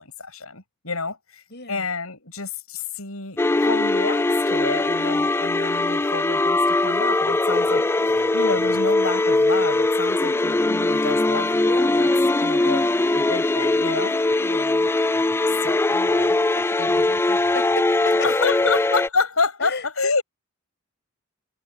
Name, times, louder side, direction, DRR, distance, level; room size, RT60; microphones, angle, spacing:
voice 1, 0.0-12.9 13.1-14.1 15.6-16.4 16.8-17.1 18.2-20.2, left 4 dB, 85° left, 7.4 m, -29 dB
voice 2, 1.5-1.8 13.4-13.5 14.4-14.9 16.5-18.5 19.6-20.1, left 3 dB, 55° left, 7.3 m, -35 dB
sound 1, 3.4-19.1, left 2 dB, 10° left, 0.3 m, -21 dB
head